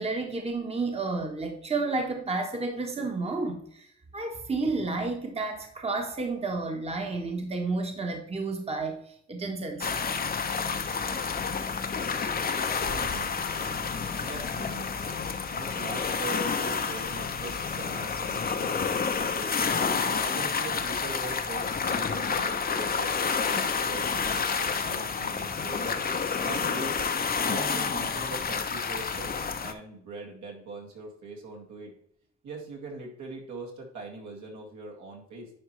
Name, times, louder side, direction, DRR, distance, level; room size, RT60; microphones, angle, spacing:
voice 1, 0.0-9.0 9.3-10.1, right 3 dB, 20° right, 3 dB, 1.1 m, -31 dB
sound 1, 9.8-29.7, left 5 dB, 30° left, 0.7 m, -29 dB
voice 2, 12.8-13.3 14.2-14.9 15.5-18.7 19.2-19.8 20.2-26.0 26.4-27.0 27.4-29.3 29.6-31.9 32.4-35.5, right 3 dB, 70° right, -1 dB, 2.2 m, -42 dB
10.0 x 4.4 x 3.2 m, 0.65 s
cardioid pair, 90°, 30 cm